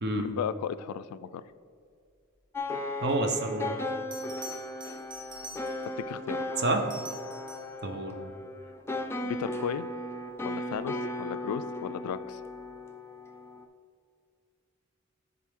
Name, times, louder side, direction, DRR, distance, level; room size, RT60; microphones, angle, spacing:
voice 1, 0.1-1.4 6.0-6.4 9.2-9.9 10.4-12.4, left 8 dB, 90° left, 16 dB, 0.3 m, -35 dB
sound 1, 2.5-13.6, left 1 dB, 10° left, 0.4 m, -36 dB
voice 2, 3.0-3.8 6.6-6.8 7.8-8.2, right 2 dB, 50° right, 4 dB, 0.8 m, -28 dB
Bell, 4.1-6.0 6.7-7.8 10.5-10.7, equal, 25° right, 1.1 m, -45 dB
10.5 x 3.9 x 3.6 m, 2.3 s
head